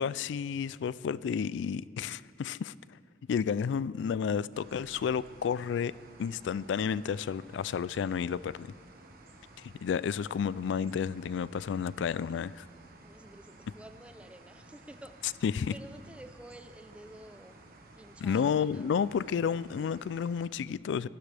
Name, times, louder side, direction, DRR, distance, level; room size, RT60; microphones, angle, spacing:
voice 1, 0.0-2.7 3.3-5.9 6.2-8.7 9.6-12.7 15.4-15.7 18.2-21.1, left 7 dB, 70° left, 0.3 m, -31 dB
sound 1, 4.5-20.5, right 2 dB, 50° right, 1.4 m, -55 dB
voice 2, 12.9-15.4 15.7-17.6 18.0-18.9, right 1 dB, 5° right, 0.6 m, -51 dB
22.5 x 12.5 x 3.4 m
head